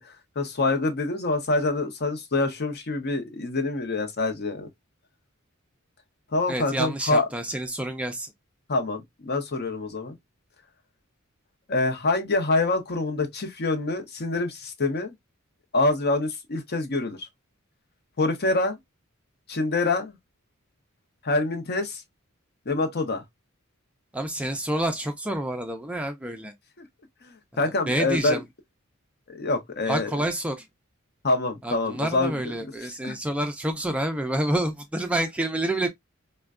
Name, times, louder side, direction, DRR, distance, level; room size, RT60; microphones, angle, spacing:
voice 1, 0.0-4.7 6.3-7.3 8.7-10.2 11.7-15.1 15.7-17.3 18.2-18.8 19.5-20.2 21.2-22.0 22.7-23.2 26.8-26.9 27.2-28.4 29.3-30.2 31.2-32.5 33.0-33.2, left 2 dB, 50° left, 0.7 m, -26 dB
voice 2, 6.5-8.3 24.1-26.5 27.9-28.4 29.9-30.7 31.6-35.9, right 1 dB, 5° right, 0.4 m, -28 dB
4.3 x 2.1 x 2.3 m
head